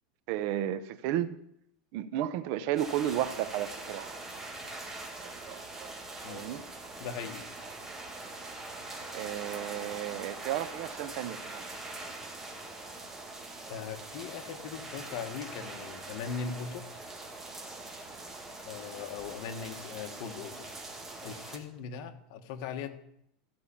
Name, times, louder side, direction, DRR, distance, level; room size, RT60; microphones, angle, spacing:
voice 1, 0.3-1.4 1.9-4.2 5.2-6.6 8.7-8.8 9.1-11.6, right 12 dB, 50° right, 0.7 m, -33 dB
sound 1, 2.8-21.6, right 2 dB, 10° right, 1.8 m, -43 dB
voice 2, 7.0-7.4 13.7-16.8 18.6-20.7 21.2-22.9, left 6 dB, 55° left, 1.5 m, -39 dB
14.5 x 5.6 x 8.5 m
supercardioid pair, 155°, 3 cm